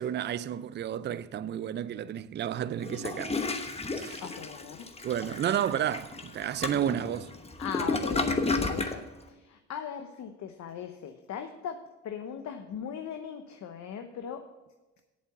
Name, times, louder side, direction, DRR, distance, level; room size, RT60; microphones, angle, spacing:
voice 1, 0.0-3.3 3.9-4.2 5.0-7.3, right 10 dB, 35° right, 0.4 m, -31 dB
Toilet flush, 2.8-9.0, left 3 dB, 20° left, 1.1 m, -32 dB
voice 2, 4.2-4.9 7.6-14.5, left 7 dB, 65° left, 0.9 m, -39 dB
8.7 x 7.5 x 6.6 m
cardioid pair, 90°, 30 cm